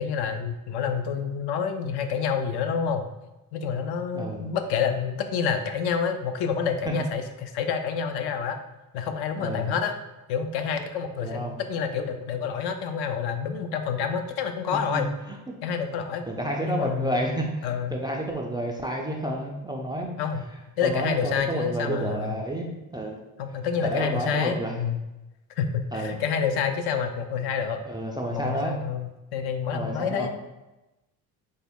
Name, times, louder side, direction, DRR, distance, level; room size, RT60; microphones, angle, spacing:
voice 1, 0.0-3.1 3.5-8.6 8.9-10.0 10.3-15.1 15.6-16.2 16.6-17.2 17.6-18.0 20.2-20.4 20.8-22.4 23.4-25.0 25.6-27.8 28.3-30.3, left 6 dB, 65° left, 7 dB, 0.5 m, -28 dB
voice 2, 4.1-4.5 9.4-9.7 11.2-11.6 14.7-15.5 16.3-20.2 20.8-23.2 23.8-24.7 25.9-26.2 27.9-28.8 29.7-30.3, right 1 dB, 10° right, -1 dB, 0.3 m, -30 dB
3.5 x 2.1 x 3.5 m, 1.0 s
supercardioid pair, 75°, 43 cm